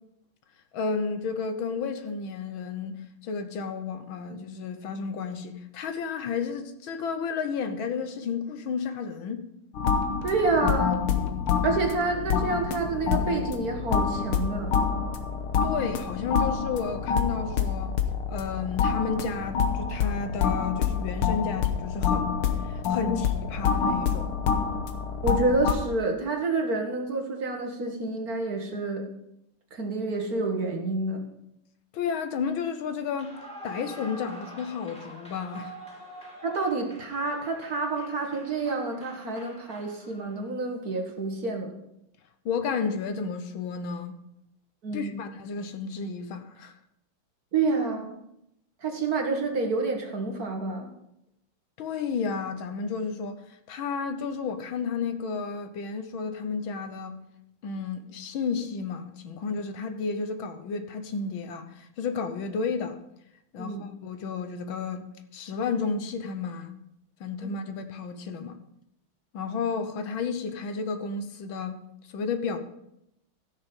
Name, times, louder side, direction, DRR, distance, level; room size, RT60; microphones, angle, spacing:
voice 1, 0.7-9.5 15.6-18.0 18.3-22.3 22.6-24.3 31.9-35.8 42.4-44.2 44.9-46.7 51.8-53.4 53.7-57.2 57.6-63.0 63.5-66.7 67.2-68.6 69.3-71.8 72.1-72.6, left 5 dB, 75° left, 1.7 m, -32 dB
sound 1, 9.8-25.7, left 6 dB, 90° left, 1.9 m, -27 dB
voice 2, 10.2-11.0 11.6-14.8 23.0-23.2 25.2-29.1 29.7-31.2 36.4-41.7 44.8-45.2 47.5-48.2 48.8-50.9 63.6-63.8, right 3 dB, 50° right, 1.8 m, -28 dB
Clapping / Cheering / Applause, 33.1-40.5, right 1 dB, 5° left, 2.7 m, -45 dB
15.5 x 6.6 x 5.3 m
omnidirectional pair, 2.3 m